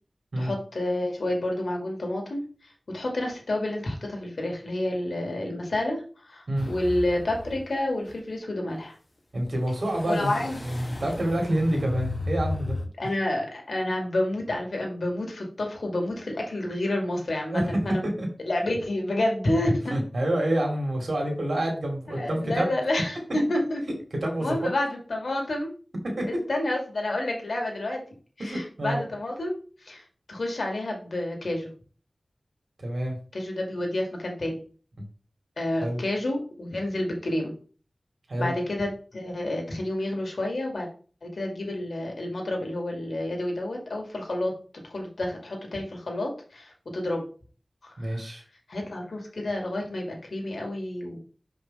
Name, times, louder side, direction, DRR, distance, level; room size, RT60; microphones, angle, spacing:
voice 1, 0.4-2.4 2.9-9.0 10.1-10.6 13.0-18.1 18.4-20.0 22.1-23.8 24.4-25.7 26.3-28.0 28.4-29.6 29.8-31.7 33.3-34.6 35.6-37.5 38.4-40.9 41.2-44.5 44.9-47.2 47.8-48.2 48.7-51.2, left 1 dB, 85° left, 1 dB, 1.9 m, -29 dB
sound 1, 6.6-7.7 8.1-8.2 9.5-12.9, left 2 dB, 40° left, 1.3 m, -34 dB
voice 2, 9.3-10.3 10.6-12.8 17.5-17.8 18.2-18.3 19.9-22.7 24.2-24.7 26.2-26.3 28.4-29.0 32.8-33.2 35.8-36.0 38.3-38.5 48.0-48.4, right 1 dB, 75° right, 1 dB, 2.3 m, -27 dB
6.3 x 5.2 x 3.8 m, 0.39 s
wide cardioid pair, 60°, 0 cm